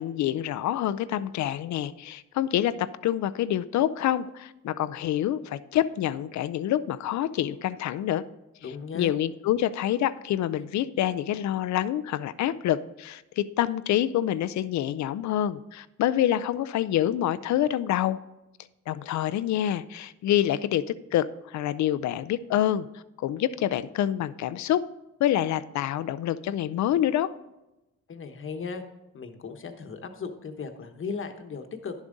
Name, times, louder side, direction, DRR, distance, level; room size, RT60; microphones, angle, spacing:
voice 1, 0.0-8.2 8.9-18.2 18.9-20.8 21.1-22.9 23.2-24.9 25.2-27.3, left 12 dB, 70° left, 15 dB, 0.5 m, -27 dB
voice 2, 8.6-9.1 28.1-28.8 29.1-31.9, left 5 dB, 45° left, 6 dB, 1.2 m, -36 dB
11.0 x 7.3 x 3.9 m, 0.98 s
cardioid pair, 90°, 30 cm